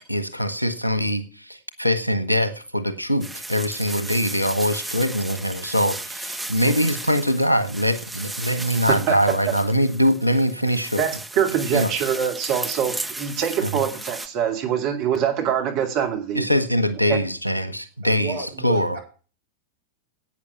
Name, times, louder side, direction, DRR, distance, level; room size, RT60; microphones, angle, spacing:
voice 1, 0.1-11.0 11.7-11.9 16.3-18.4 18.6-19.0, equal, 90° left, 13 dB, 1.2 m, -23 dB
sound 1, 3.2-14.3, right 2 dB, 5° right, 1.0 m, -35 dB
voice 2, 11.0-16.4 17.1-17.2, right 8 dB, 40° right, 3 dB, 2.4 m, -24 dB
voice 3, 18.0-19.0, right 7 dB, 60° right, 2 dB, 5.6 m, -32 dB
11.0 x 8.8 x 5.8 m, 0.36 s
figure-of-eight pair, 90°, 0 cm